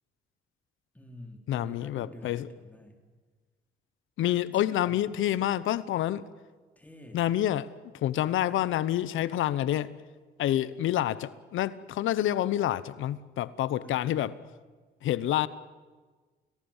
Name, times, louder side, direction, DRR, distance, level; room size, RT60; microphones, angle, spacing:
voice 1, 0.9-3.0 4.2-5.0 6.8-7.2 13.8-14.3, left 2 dB, 10° left, 3 dB, 3.8 m, -47 dB
voice 2, 1.5-2.5 4.2-6.2 7.1-7.7 7.9-9.9 10.4-14.3 15.0-15.5, left 12 dB, 80° left, 17 dB, 1.0 m, -28 dB
29.5 x 18.0 x 7.3 m, 1.4 s
cardioid pair, 90°, 20 cm